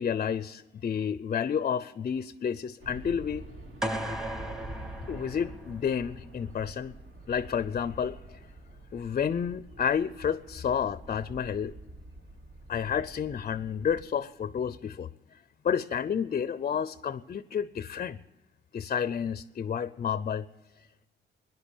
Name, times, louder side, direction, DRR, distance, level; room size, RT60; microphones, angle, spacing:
voice 1, 0.0-3.5 5.1-6.9 7.3-8.4 8.9-11.7 12.7-15.1 15.6-18.2 18.7-20.5, left 7 dB, 40° left, 15 dB, 0.5 m, -30 dB
sound 1, 2.8-14.0, right 2 dB, 75° right, 3.5 m, -47 dB
sound 2, 3.8-5.9, right 1 dB, 5° right, 1.2 m, -36 dB
18.0 x 10.5 x 7.2 m, 1.2 s
cardioid pair, 90°, 20 cm